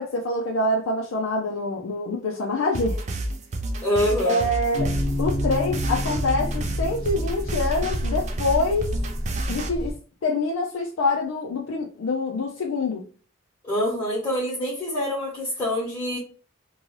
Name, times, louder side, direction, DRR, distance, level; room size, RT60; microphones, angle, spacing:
voice 1, 0.0-3.0 4.3-4.9 5.2-8.9 9.5-10.0 10.2-13.0, left 2 dB, 90° left, 0.4 m, -25 dB
sound 1, 2.7-9.7, right 2 dB, 35° right, 0.3 m, -30 dB
voice 2, 3.8-4.5 13.6-16.2, left 1 dB, 25° left, 0.9 m, -25 dB
sound 2, 4.7-9.9, left 1 dB, 20° right, 0.8 m, -29 dB
2.6 x 2.2 x 3.1 m
head